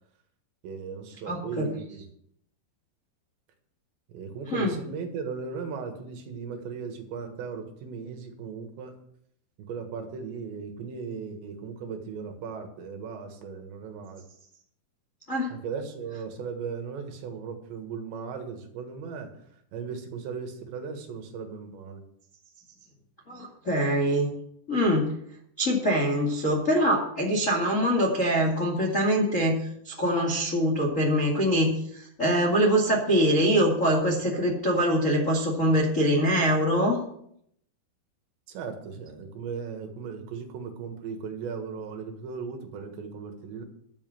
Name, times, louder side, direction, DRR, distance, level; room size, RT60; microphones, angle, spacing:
voice 1, 0.6-2.0 4.1-9.0 9.7-14.2 15.5-19.3 19.7-22.0 38.5-43.6, right 5 dB, 70° right, 5 dB, 3.6 m, -37 dB
voice 2, 1.2-1.7 4.5-4.7 15.3-15.5 23.3-24.3 24.7-25.1 25.6-37.0, equal, 40° left, -1 dB, 1.1 m, -24 dB
12.0 x 7.4 x 7.6 m, 0.71 s
omnidirectional pair, 5.6 m